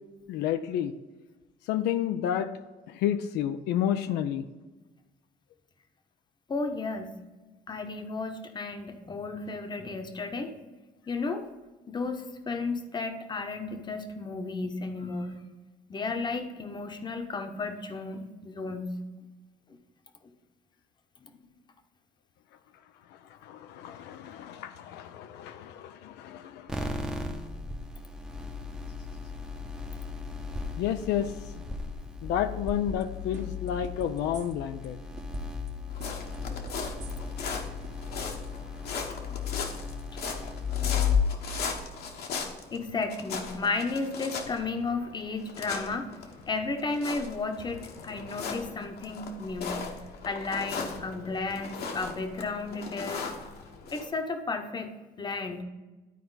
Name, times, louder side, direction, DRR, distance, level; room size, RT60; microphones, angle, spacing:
voice 1, 0.3-0.9 1.7-2.5 2.9-4.5 23.4-27.0 27.3-27.4 30.8-31.6 32.2-35.0, left 10 dB, 85° left, 9 dB, 0.5 m, -31 dB
voice 2, 6.5-7.1 7.7-10.6 11.1-11.5 11.9-15.4 15.9-19.0 21.2-21.3 39.3-39.4 40.1-40.2 42.7-46.1 46.5-49.9 50.2-53.3 53.9-55.6, left 3 dB, 25° left, 6 dB, 0.9 m, -33 dB
sound 1, 26.7-41.2, left 6 dB, 5° right, 0.7 m, -35 dB
sound 2, 32.7-33.0 33.3-34.9 35.2-35.7 36.0-37.5 37.8-37.9, right 4 dB, 45° right, 1.1 m, -41 dB
sound 3, 35.9-54.0, left 5 dB, 70° left, 1.3 m, -38 dB
12.0 x 4.5 x 4.0 m, 1.2 s
cardioid pair, 110°, 17 cm